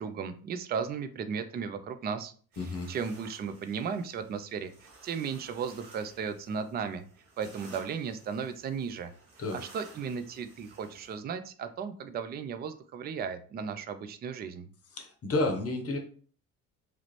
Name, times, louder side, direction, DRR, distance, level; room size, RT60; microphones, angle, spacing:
voice 1, 0.0-2.3 2.9-7.0 7.4-9.1 9.5-14.7, right 6 dB, 25° right, 10 dB, 0.4 m, -35 dB
sound 1, 2.5-11.2, right 2 dB, 70° right, 1.3 m, -55 dB
voice 2, 2.6-2.9 9.4-9.6 14.9-16.0, left 2 dB, 35° left, 4 dB, 0.8 m, -31 dB
3.1 x 2.4 x 3.1 m, 0.43 s
hypercardioid pair, 55°, 42 cm